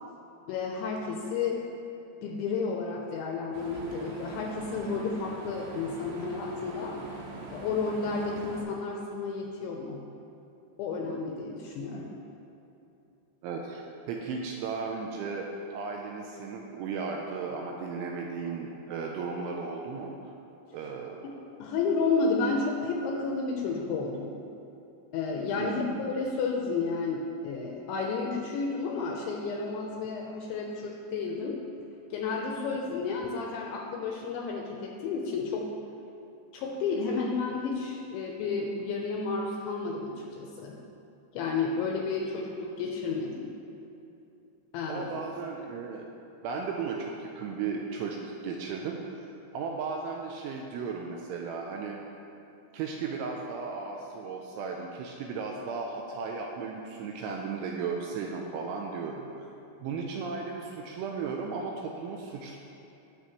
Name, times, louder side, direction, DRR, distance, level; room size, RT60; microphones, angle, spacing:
voice 1, 0.5-1.6 2.2-7.0 7.5-10.0 10.8-12.1 21.2-24.3 25.1-31.6 32.1-35.7 36.5-40.8 41.3-43.5 44.7-45.1, left 4 dB, 85° left, 0 dB, 2.8 m, -31 dB
sound 1, 3.5-8.6, right 2 dB, 70° right, 3.0 m, -42 dB
voice 2, 13.4-20.1 20.7-21.3 25.6-26.0 44.9-46.1 46.4-52.0 52.7-59.3 59.8-62.6, right 5 dB, 85° right, 1 dB, 2.8 m, -35 dB
18.5 x 6.8 x 3.1 m, 2.8 s
omnidirectional pair, 5.9 m